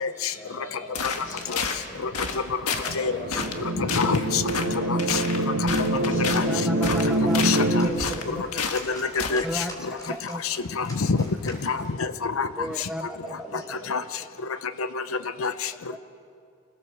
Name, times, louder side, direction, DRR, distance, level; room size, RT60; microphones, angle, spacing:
voice 1, 0.3-2.2 2.7-3.5 4.8-5.3 5.9-7.4 13.2-13.9, equal, 35° left, -2 dB, 6.9 m, -40 dB
sound 1, 0.9-1.8 2.1-2.4 2.7-3.0 3.3-3.6 3.9-4.2 4.5-4.7 5.0-6.4 6.8-7.6 8.0-8.9 9.2-9.4, left 5 dB, 90° left, 1.6 m, -29 dB
sound 2, 3.0-7.9, right 1 dB, 80° right, 1.8 m, -25 dB
voice 2, 3.8-4.4 4.9-5.0 6.3-6.4 7.4-7.8 8.9-9.0 9.3-9.6 10.8-11.2 11.7-12.5 13.9-14.0 15.4-15.5, left 5 dB, 70° left, 12 dB, 0.7 m, -25 dB
voice 3, 6.1-7.4 7.8-8.4 9.3-10.4 12.6-13.9 15.9-16.0, equal, ahead, 6 dB, 0.7 m, -35 dB
sound 3, 6.9-12.0, equal, 15° left, 3.3 m, -45 dB
26.0 x 17.5 x 7.2 m, 2.4 s
head